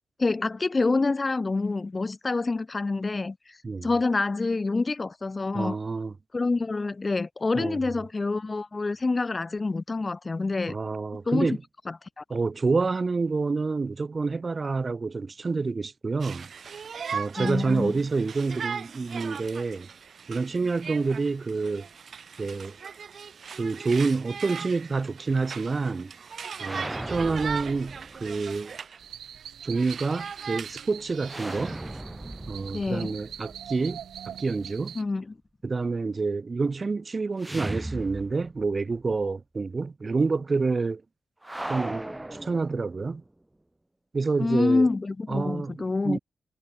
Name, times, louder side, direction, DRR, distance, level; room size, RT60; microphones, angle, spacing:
voice 1, 0.2-5.8 6.3-10.8 11.3-11.6 11.9-12.2 17.4-17.9 32.7-33.2 35.0-35.3 44.4-46.2, left 3 dB, 35° left, 0.9 m, -27 dB
voice 2, 5.5-6.1 7.5-7.9 10.7-11.6 12.3-16.5 17.1-19.9 20.3-21.9 22.4-22.8 23.6-26.1 26.6-28.7 29.6-31.8 32.5-35.0 35.6-41.0 41.7-42.0 42.4-43.2 44.1-44.9 45.3-46.2, right 4 dB, 40° right, 3.2 m, -28 dB
Conversation, 16.2-29.0 29.4-32.0, right 6 dB, 60° right, 2.1 m, -39 dB
sound 1, 26.6-28.6 31.2-34.2 37.4-38.8 39.1-39.2 41.4-43.2, right 1 dB, 15° right, 4.0 m, -37 dB
sound 2, 29.0-35.0, right 9 dB, 75° right, 5.0 m, -43 dB
supercardioid pair, 50°, 0 cm